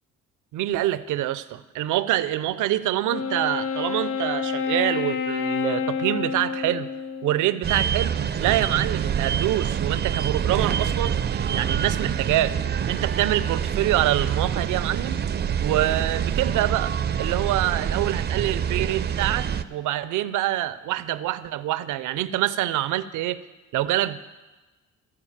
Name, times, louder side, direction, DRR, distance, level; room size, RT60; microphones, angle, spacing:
voice 1, 0.5-6.9 7.2-8.1 8.4-12.6 12.9-15.2 15.6-16.9 17.2-23.4 23.7-24.2, right 14 dB, 85° right, 13 dB, 0.6 m, -25 dB
Wind instrument woodwind instrument, 3.1-7.6, left 6 dB, 85° left, 0.6 m, -28 dB
sound 1, 7.6-19.6, right 8 dB, 35° right, 0.5 m, -26 dB
14.5 x 4.8 x 7.3 m, 1.2 s
cardioid pair, 90°, 30 cm